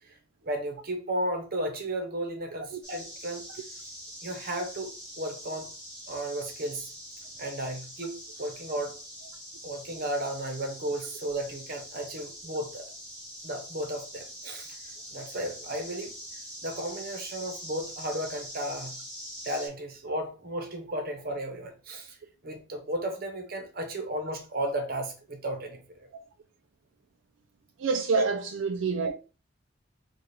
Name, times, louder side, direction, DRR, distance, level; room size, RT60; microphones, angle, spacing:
voice 1, 0.4-3.5 4.2-5.7 6.1-6.9 7.4-9.0 9.6-12.9 13.4-14.8 15.1-16.1 16.6-19.0 19.4-22.2 22.4-26.1 28.1-28.2, right 1 dB, 50° right, 0.9 m, -34 dB
sound 1, 2.8-19.7, equal, 5° left, 2.0 m, -44 dB
voice 2, 27.8-29.1, right 4 dB, 75° right, 0.4 m, -27 dB
4.3 x 2.4 x 3.3 m
head